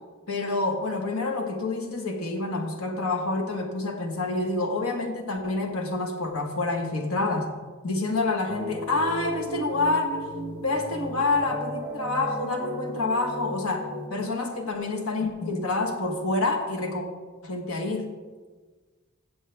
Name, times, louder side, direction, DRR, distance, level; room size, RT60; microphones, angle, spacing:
voice 1, 0.3-7.5 7.8-10.3 10.6-17.0 17.4-18.1, left 2 dB, 85° left, 4 dB, 1.5 m, -27 dB
sound 1, 8.5-14.1, equal, 20° right, 1.7 m, -35 dB
15.0 x 7.6 x 3.4 m, 1.4 s
head